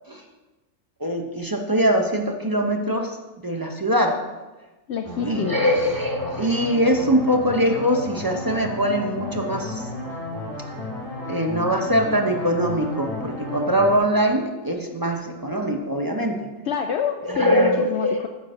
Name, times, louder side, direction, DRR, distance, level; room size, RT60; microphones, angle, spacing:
voice 1, 1.0-3.2 3.4-4.2 5.2-9.8 11.3-16.5 17.3-18.2, equal, 20° right, 3 dB, 0.6 m, -22 dB
voice 2, 4.9-5.7 16.6-18.3, left 7 dB, 65° left, 6 dB, 0.8 m, -27 dB
sound 1, 5.0-14.0, left 1 dB, 5° left, 3.1 m, -33 dB
9.3 x 4.6 x 6.3 m, 1.1 s
omnidirectional pair, 1.4 m